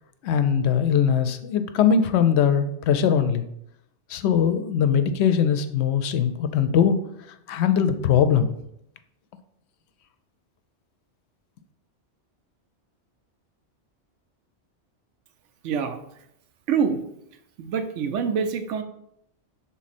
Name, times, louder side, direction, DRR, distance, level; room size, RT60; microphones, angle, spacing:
voice 1, 0.2-3.4 4.1-7.0 7.5-8.5, left 7 dB, 70° left, 10 dB, 0.8 m, -21 dB
voice 2, 15.6-16.0 16.7-17.0 17.6-18.8, right 6 dB, 80° right, 8 dB, 1.0 m, -25 dB
6.1 x 3.9 x 4.2 m, 0.77 s
omnidirectional pair, 1.2 m